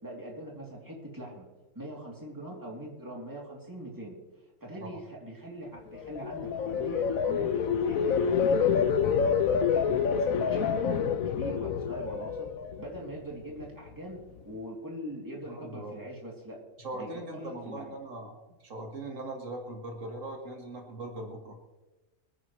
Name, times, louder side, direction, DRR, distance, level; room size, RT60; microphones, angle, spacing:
voice 1, 0.0-1.4 1.7-4.2 4.6-8.3 9.0-12.5 12.8-16.6 16.9-17.9, right 1 dB, 15° right, -2 dB, 2.8 m, -42 dB
sound 1, 5.9-13.1 13.5-13.9, left 7 dB, 85° left, 1.2 m, -27 dB
voice 2, 15.5-16.0 16.8-21.6, right 2 dB, 70° right, 2 dB, 2.0 m, -40 dB
24.5 x 10.0 x 3.2 m, 1.2 s
omnidirectional pair, 1.4 m